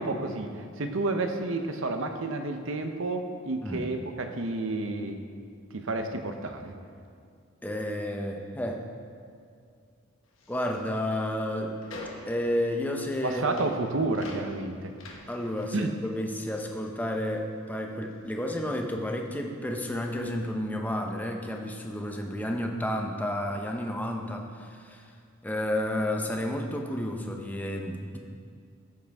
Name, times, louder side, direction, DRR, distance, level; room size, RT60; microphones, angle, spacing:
voice 1, 0.0-5.2 5.7-6.7 13.2-14.9 15.7-15.9, right 2 dB, 65° right, 6 dB, 0.8 m, -30 dB
voice 2, 7.6-8.8 10.5-11.8 12.3-13.7 15.3-25.1 25.4-28.2, left 1 dB, 10° left, 2 dB, 0.7 m, -31 dB
sound 1, 10.2-17.8 18.0-19.5, left 2 dB, 75° left, 1.4 m, -49 dB
14.0 x 7.6 x 3.6 m, 2.3 s
head